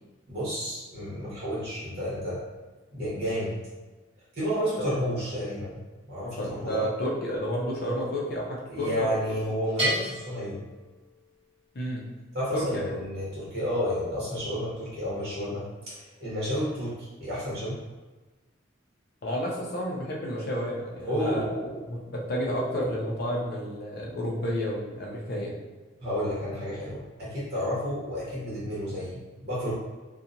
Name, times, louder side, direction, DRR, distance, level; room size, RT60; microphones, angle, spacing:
voice 1, 0.3-2.4 2.9-3.5 4.3-6.8 8.7-10.6 12.3-16.9 17.2-17.8 21.1-21.8 22.4-23.0 26.0-29.7, equal, 50° right, -8 dB, 1.2 m, -31 dB
voice 2, 6.4-9.3 11.7-12.0 12.5-12.9 19.2-21.5 21.9-25.6, equal, 50° left, -3 dB, 0.5 m, -31 dB
Bell, 9.8-11.5, right 1 dB, 30° right, 1.1 m, -32 dB
2.8 x 2.3 x 2.5 m, 1.2 s
head